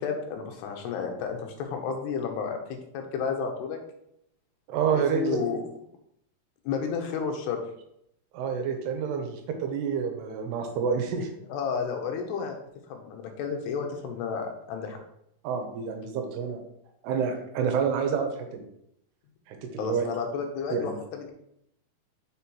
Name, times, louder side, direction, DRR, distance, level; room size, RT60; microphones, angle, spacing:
voice 1, 0.0-3.8 4.9-5.6 6.6-7.6 11.5-12.6 12.9-15.0 19.8-21.3, left 6 dB, 85° left, 4 dB, 3.0 m, -32 dB
voice 2, 4.7-5.4 8.3-11.3 15.4-16.6 17.0-18.6 19.5-20.1 20.7-21.0, right 6 dB, 80° right, 4 dB, 3.0 m, -28 dB
6.9 x 6.8 x 3.1 m, 0.77 s
omnidirectional pair, 4.8 m